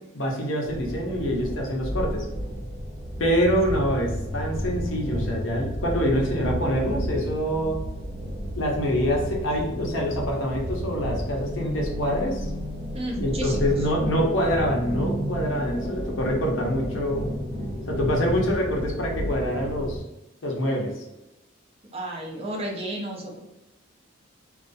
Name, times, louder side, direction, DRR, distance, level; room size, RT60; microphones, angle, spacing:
voice 1, 0.1-2.3 3.2-7.8 8.5-12.5 13.2-17.3 17.9-20.0 20.4-21.0, equal, 80° left, -1 dB, 0.7 m, -25 dB
sound 1, 0.6-20.0, equal, 75° right, 0.9 m, -31 dB
voice 2, 12.9-13.8 21.9-23.4, right 1 dB, 30° right, -1 dB, 0.5 m, -32 dB
2.3 x 2.3 x 2.5 m, 0.95 s
head